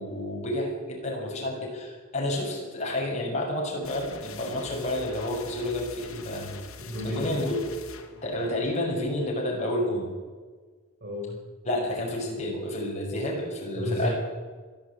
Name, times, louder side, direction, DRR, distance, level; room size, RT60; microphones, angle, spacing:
voice 1, 0.0-6.5 7.0-7.6 8.2-10.0 11.7-14.1, left 1 dB, 30° left, -2 dB, 7.2 m, -30 dB
sound 1, 3.8-9.5, left 4 dB, 85° left, 2.6 m, -45 dB
voice 2, 6.8-7.4 11.0-11.4 13.7-14.1, equal, 50° right, -5 dB, 6.5 m, -32 dB
22.0 x 14.0 x 9.0 m, 1.4 s
head